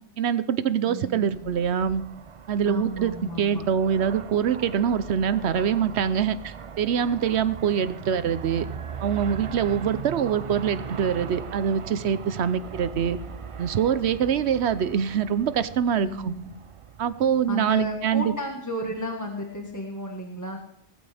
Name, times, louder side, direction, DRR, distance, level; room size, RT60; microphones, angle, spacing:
voice 1, 0.2-2.0 2.5-8.7 9.0-13.2 13.6-16.3 17.0-18.3, right 8 dB, 65° right, 14 dB, 1.0 m, -24 dB
voice 2, 0.9-1.5 2.6-3.6 16.0-16.5 17.5-20.6, equal, 15° left, 1 dB, 1.5 m, -33 dB
Aircraft, 1.1-18.3, right 6 dB, 45° right, 0.4 m, -39 dB
19.0 x 14.0 x 3.5 m, 0.73 s
omnidirectional pair, 1.2 m